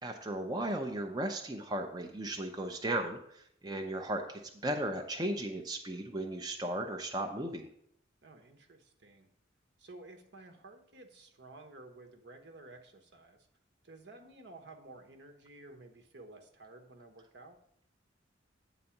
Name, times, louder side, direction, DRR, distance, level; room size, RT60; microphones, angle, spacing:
voice 1, 0.0-7.7, right 1 dB, 20° right, 3 dB, 0.6 m, -36 dB
voice 2, 8.2-9.3 9.8-13.5 13.8-17.6, right 2 dB, 65° right, 4 dB, 1.1 m, -53 dB
8.7 x 4.1 x 7.1 m, 0.71 s
head